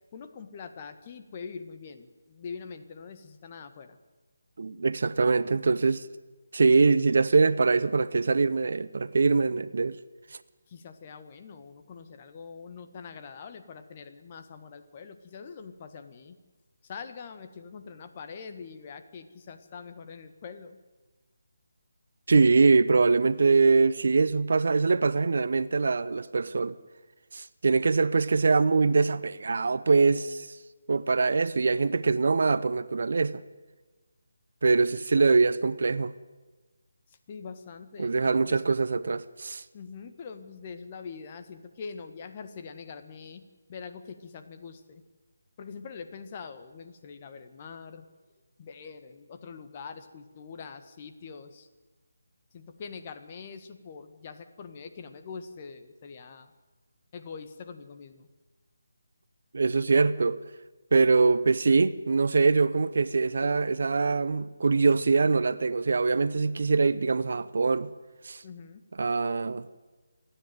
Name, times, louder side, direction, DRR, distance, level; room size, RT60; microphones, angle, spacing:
voice 1, 0.1-4.0 10.7-16.4 16.8-20.8 37.3-38.6 39.7-43.4 43.7-45.0 45.6-48.0 48.6-51.7 52.5-56.5 57.1-58.3 68.2-68.8, left 5 dB, 30° left, 1.6 m, -43 dB
voice 2, 4.6-6.1 6.5-10.0 22.3-26.8 27.3-30.5 30.9-33.4 34.6-36.1 38.0-39.6 59.5-60.4 60.9-67.9 68.2-68.4 69.0-69.7, right 4 dB, 55° right, 0.8 m, -23 dB
28.0 x 10.0 x 9.3 m
figure-of-eight pair, 155°, 0 cm